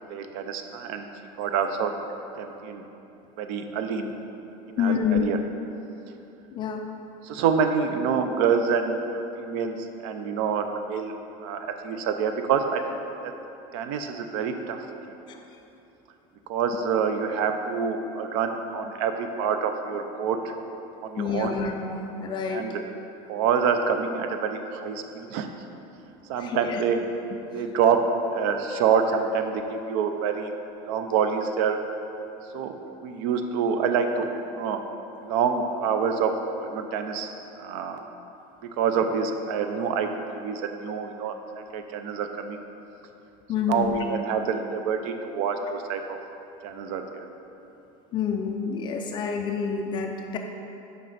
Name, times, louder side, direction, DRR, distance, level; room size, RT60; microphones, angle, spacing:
voice 1, 0.1-1.1 1.4-1.9 2.4-2.8 3.4-4.1 4.7-5.4 7.2-11.1 11.4-13.3 13.7-15.1 16.5-20.5 21.0-21.6 22.5-22.8 23.3-25.7 26.3-27.0 27.5-28.0 28.3-30.5 30.8-31.8 32.5-32.7 33.0-34.3 34.5-34.8 35.2-38.0 38.8-42.6 43.6-46.2 46.6-47.3, right 6 dB, 65° right, 6 dB, 0.5 m, -27 dB
voice 2, 4.8-5.4 6.5-6.9 15.3-15.4 21.2-22.7 25.0-25.1 26.4-26.8 43.5-44.0 48.1-50.4, left 6 dB, 30° left, 3 dB, 0.4 m, -28 dB
7.5 x 5.3 x 4.0 m, 2.9 s
cardioid pair, 165°, 15 cm